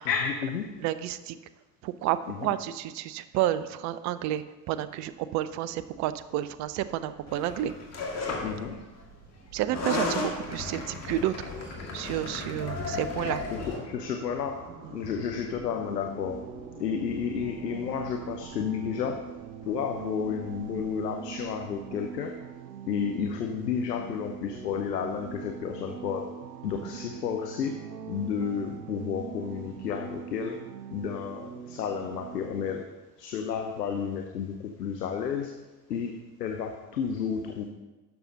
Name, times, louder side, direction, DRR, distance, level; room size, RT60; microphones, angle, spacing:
voice 1, 0.0-0.8 2.3-2.5 8.4-8.8 13.5-16.5 16.8-19.2 19.6-22.4 22.9-26.3 26.6-27.8 28.1-30.6 30.9-32.9 33.2-35.5 35.9-37.6, left 7 dB, 75° left, 4 dB, 0.9 m, -32 dB
voice 2, 0.8-1.4 1.8-7.7 9.5-13.4 26.9-27.0, right 12 dB, 35° right, 14 dB, 0.5 m, -31 dB
sound 1, 5.0-22.7, right 4 dB, 55° right, 1.6 m, -49 dB
sound 2, 7.3-8.6 9.6-13.8, left 3 dB, 30° left, 2.0 m, -34 dB
sound 3, 15.7-32.8, right 8 dB, 75° right, 0.7 m, -42 dB
11.5 x 7.0 x 3.9 m, 1.2 s
figure-of-eight pair, 60°, 49 cm